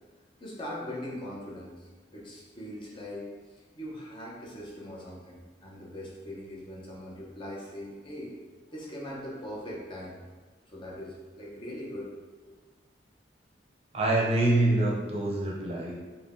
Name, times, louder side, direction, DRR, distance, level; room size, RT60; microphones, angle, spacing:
voice 1, 0.4-3.3 3.7-8.4 8.7-10.2 10.7-12.1 12.5-12.6, left 1 dB, 30° left, -5 dB, 0.7 m, -41 dB
voice 2, 13.9-16.0, right 2 dB, 35° right, -3 dB, 0.6 m, -25 dB
3.9 x 2.2 x 3.5 m, 1.3 s
head